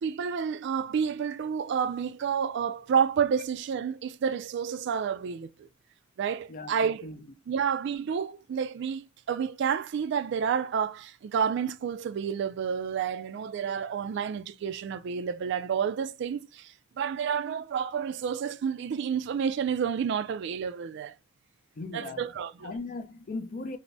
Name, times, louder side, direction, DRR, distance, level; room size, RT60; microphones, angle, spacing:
voice 1, 0.0-5.7 6.2-7.1 7.5-21.2 21.9-22.7, right 7 dB, 65° right, 0.3 m, -30 dB
voice 2, 21.8-22.3 22.6-23.8, left 3 dB, 45° left, 0.5 m, -37 dB
3.8 x 2.0 x 3.3 m
head